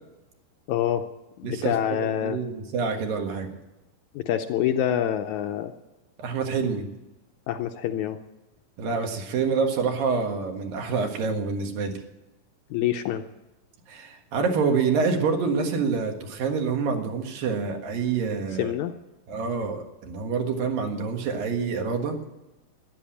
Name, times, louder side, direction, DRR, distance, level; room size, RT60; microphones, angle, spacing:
voice 1, 0.7-1.1 1.4-2.4 4.2-5.7 7.5-8.2 12.7-13.2 18.6-18.9, left 11 dB, 75° left, 7 dB, 1.8 m, -26 dB
voice 2, 1.4-3.6 6.2-6.9 8.8-12.0 13.9-18.7 19.3-22.2, right 5 dB, 85° right, 4 dB, 3.4 m, -27 dB
14.0 x 11.0 x 8.5 m, 1.0 s
omnidirectional pair, 3.9 m